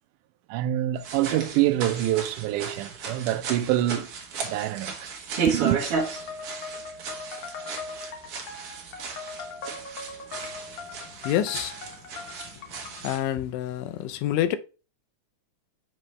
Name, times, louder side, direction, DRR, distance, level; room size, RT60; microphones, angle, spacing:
voice 1, 0.5-4.1 4.4-5.1 5.5-5.8, right 14 dB, 85° right, 2.1 m, -26 dB
sound 1, 1.0-13.2, right 5 dB, 55° right, 1.8 m, -34 dB
sound 2, 5.9-13.1, left 4 dB, 65° left, 1.2 m, -40 dB
voice 2, 11.2-11.8 12.7-14.6, left 11 dB, 80° left, 2.0 m, -28 dB
5.9 x 5.5 x 3.1 m
omnidirectional pair, 3.5 m